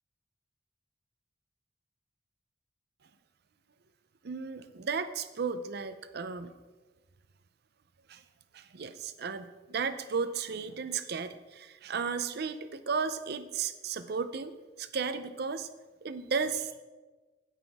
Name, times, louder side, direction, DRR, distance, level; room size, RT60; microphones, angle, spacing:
voice 1, 4.2-6.5 8.1-8.2 8.5-15.7 16.0-16.8, right 5 dB, 60° right, 11 dB, 0.6 m, -34 dB
16.0 x 5.9 x 3.5 m, 1.3 s
head